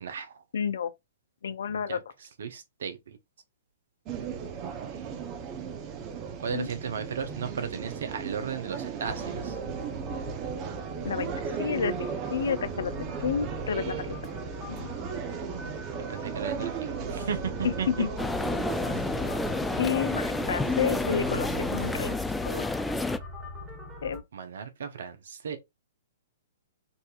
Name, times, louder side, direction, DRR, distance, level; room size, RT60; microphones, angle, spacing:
voice 1, 0.0-0.3 1.9-2.0 2.4-3.2 6.4-9.6 16.1-17.9 24.3-25.6, right 6 dB, 65° right, 0.8 m, -35 dB
voice 2, 0.5-0.9 1.4-2.0 6.5-6.7 11.0-11.3 11.6-12.9 13.2-14.2 14.7-14.9 17.6-18.1 19.8-22.2 22.5-22.7 24.0-24.2, left 7 dB, 70° left, 0.5 m, -30 dB
sound 1, 4.1-22.2, right 7 dB, 35° right, 0.7 m, -36 dB
sound 2, 9.0-24.2, left 1 dB, 15° right, 1.1 m, -41 dB
sound 3, 18.2-23.2, left 3 dB, 5° left, 0.3 m, -30 dB
4.1 x 2.7 x 2.4 m
figure-of-eight pair, 115°, 0 cm